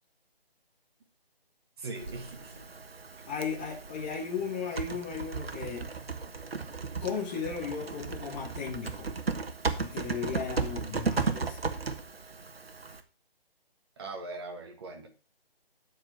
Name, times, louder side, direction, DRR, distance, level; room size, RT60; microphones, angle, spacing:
voice 1, 1.8-2.6 14.0-15.1, right 3 dB, 25° right, 1.7 m, -41 dB
Typing, 1.9-13.0, right 4 dB, 70° right, 1.4 m, -35 dB
voice 2, 3.3-5.9 7.0-9.1 9.8-11.6, left 6 dB, 10° left, 1.1 m, -36 dB
10.5 x 4.8 x 6.1 m
figure-of-eight pair, 160°, 31 cm